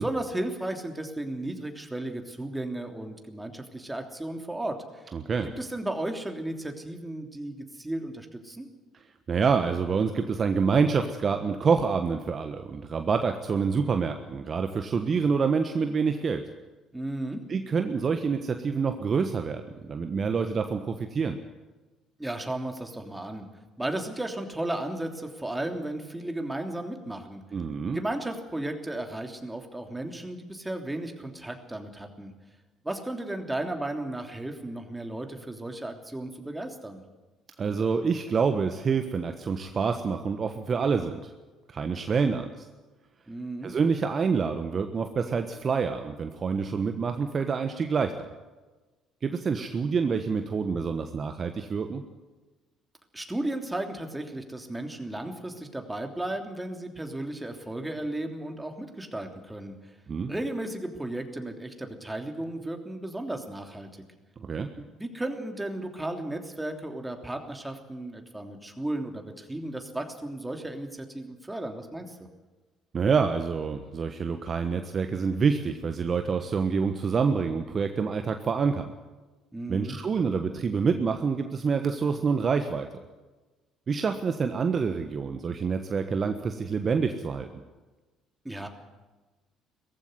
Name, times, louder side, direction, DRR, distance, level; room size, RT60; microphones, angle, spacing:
voice 1, 0.0-5.1 5.4-8.7 16.9-17.4 22.2-23.5 23.8-27.4 27.9-32.3 32.8-37.0 43.3-43.7 53.1-59.7 60.3-63.9 64.8-72.3 79.5-80.0 88.4-88.7, right 1 dB, 10° right, 4 dB, 3.1 m, -34 dB
voice 2, 5.1-5.5 9.3-16.4 17.5-21.4 27.5-28.0 37.6-41.3 41.7-42.7 43.6-48.3 49.2-52.0 60.1-60.3 64.4-64.7 72.9-78.9 79.7-83.0 83.9-87.6, right 5 dB, 40° right, 7 dB, 1.2 m, -27 dB
18.0 x 15.0 x 9.7 m, 1.3 s
hypercardioid pair, 55°, 0 cm